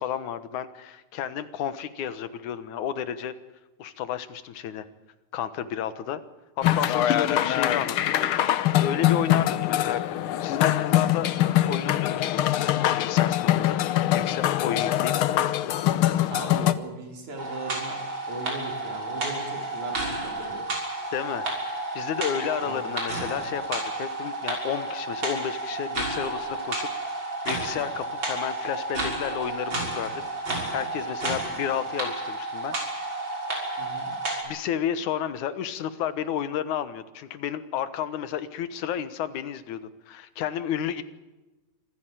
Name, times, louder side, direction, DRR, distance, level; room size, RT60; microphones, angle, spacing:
voice 1, 0.0-3.3 3.8-4.9 5.3-6.2 6.6-8.2 8.8-10.0 10.4-11.3 11.7-13.8 14.1-15.1 21.1-30.5 30.7-32.8 34.4-41.0, left 9 dB, 85° left, 13 dB, 2.7 m, -32 dB
sound 1, 6.6-16.7, left 12 dB, 65° left, 1.4 m, -23 dB
voice 2, 16.3-20.7 22.6-22.8 33.8-34.1, right 2 dB, 80° right, 3 dB, 5.7 m, -39 dB
sound 2, 17.4-34.4, right 2 dB, 40° right, 6.7 m, -31 dB
25.5 x 16.0 x 9.1 m, 1.1 s
omnidirectional pair, 3.3 m